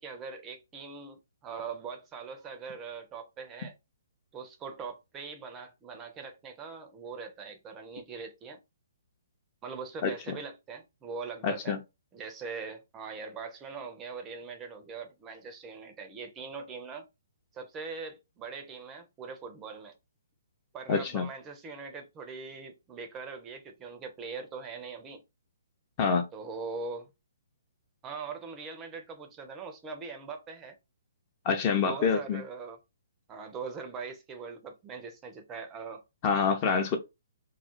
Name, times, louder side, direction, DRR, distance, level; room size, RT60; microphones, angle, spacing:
voice 1, 0.0-3.7 4.3-8.6 9.6-11.8 12.1-17.1 17.5-19.9 20.7-25.2 26.3-27.1 28.0-30.8 31.7-32.8 33.3-36.0, right 5 dB, 20° right, 0.5 m, -41 dB
voice 2, 10.0-10.4 11.4-11.8 20.9-21.3 26.0-26.3 31.4-32.4 36.2-37.0, left 5 dB, 35° left, 0.6 m, -27 dB
2.3 x 2.0 x 2.8 m
figure-of-eight pair, 130°, 0 cm